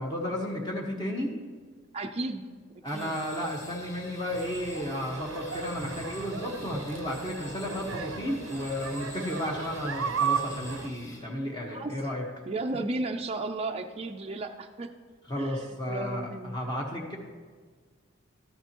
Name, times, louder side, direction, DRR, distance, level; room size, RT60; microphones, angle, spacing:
voice 1, 0.0-1.4 2.8-12.3 15.3-17.2, left 1 dB, 20° left, -1 dB, 1.3 m, -33 dB
voice 2, 1.9-2.5 2.9-3.2 11.6-12.1 12.5-14.9 15.4-16.6, right 2 dB, 30° right, 4 dB, 0.5 m, -34 dB
sound 1, 2.8-11.2, left 2 dB, 55° left, 3.2 m, -48 dB
sound 2, 4.3-10.9, right 6 dB, 75° right, 0.6 m, -35 dB
13.0 x 11.5 x 3.0 m, 1.6 s
head